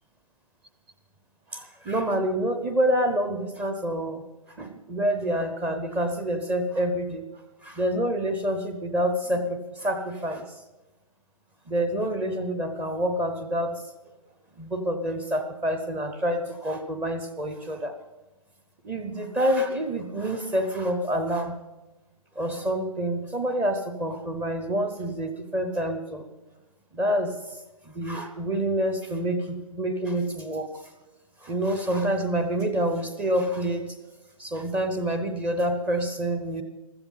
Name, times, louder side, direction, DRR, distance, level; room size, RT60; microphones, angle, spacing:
voice 1, 1.5-4.2 4.6-7.2 7.6-10.4 11.7-13.8 14.6-17.9 18.8-21.6 22.4-26.3 26.9-27.4 27.8-30.7 31.4-34.0 34.4-36.6, right 1 dB, 10° right, 7 dB, 0.7 m, -27 dB
15.0 x 13.5 x 5.5 m, 1.1 s
hypercardioid pair, 160°, 19 cm